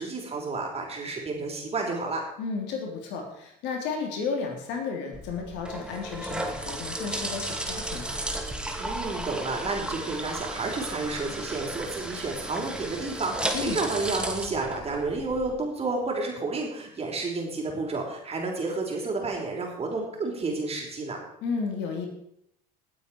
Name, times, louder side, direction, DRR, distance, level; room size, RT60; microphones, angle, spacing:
voice 1, 0.0-2.2 8.8-21.2, right 3 dB, 30° right, 0 dB, 4.8 m, -31 dB
voice 2, 2.4-8.2 13.5-13.8 21.4-22.1, left 5 dB, 60° left, 2 dB, 3.5 m, -33 dB
sound 1, 5.1-15.5, right 1 dB, 5° right, 2.3 m, -34 dB
18.5 x 8.7 x 4.8 m, 0.73 s
hypercardioid pair, 70°, 21 cm